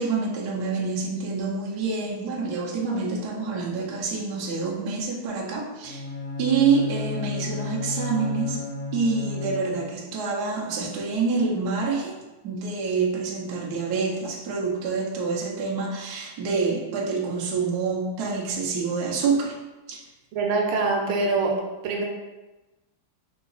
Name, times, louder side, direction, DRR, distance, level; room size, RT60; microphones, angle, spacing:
voice 1, 0.0-6.1 6.4-8.6 8.9-12.2 12.4-19.5 19.9-20.0, right 4 dB, 65° right, -3 dB, 1.0 m, -27 dB
Bowed string instrument, 5.8-10.1, left 3 dB, 85° left, 1.6 m, -32 dB
voice 2, 20.3-21.6 21.8-22.0, right 3 dB, 90° right, 0 dB, 1.5 m, -24 dB
3.8 x 2.4 x 3.9 m, 1.1 s
omnidirectional pair, 2.4 m